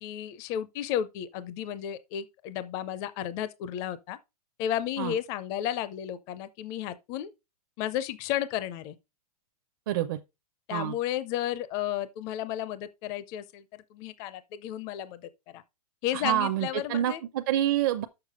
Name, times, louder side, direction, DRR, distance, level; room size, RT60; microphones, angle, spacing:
voice 1, 0.0-4.2 4.6-7.3 7.8-9.0 10.7-15.6 16.0-17.2, left 11 dB, 20° left, 0.4 m, -33 dB
voice 2, 9.9-10.2 10.7-10.9 16.1-18.1, right 12 dB, 35° right, 0.5 m, -27 dB
6.8 x 6.7 x 4.9 m
hypercardioid pair, 170°, 19 cm